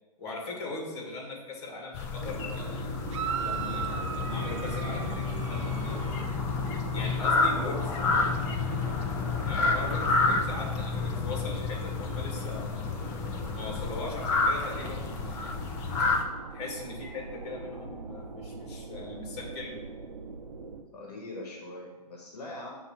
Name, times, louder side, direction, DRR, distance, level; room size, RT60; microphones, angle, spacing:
voice 1, 0.2-2.9 3.4-6.0 6.9-7.8 9.4-12.8 13.5-15.5 16.5-19.8, left 2 dB, 45° left, 0 dB, 2.0 m, -40 dB
sound 1, 1.9-16.2, left 4 dB, 20° left, 0.4 m, -30 dB
sound 2, 2.2-20.8, right 4 dB, 90° right, 0.8 m, -41 dB
sound 3, 3.1-6.4, right 8 dB, 50° right, 0.4 m, -37 dB
voice 2, 7.2-8.7 20.9-22.7, left 2 dB, 75° left, 0 dB, 1.3 m, -41 dB
6.6 x 2.9 x 5.8 m, 1.2 s
hypercardioid pair, 150°, 20 cm